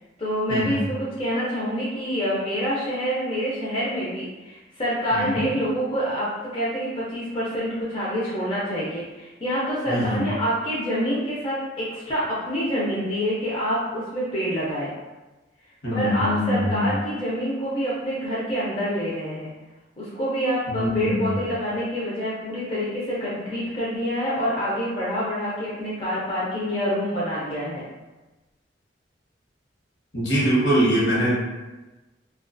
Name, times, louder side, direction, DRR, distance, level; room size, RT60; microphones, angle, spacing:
voice 1, 0.2-14.9 15.9-19.5 20.0-27.8, equal, 30° left, -7 dB, 0.4 m, -27 dB
voice 2, 5.1-5.4 9.9-10.3 15.8-16.9 20.7-21.5 30.1-31.4, equal, 70° left, -7 dB, 1.0 m, -23 dB
2.3 x 2.3 x 2.5 m, 1.1 s
head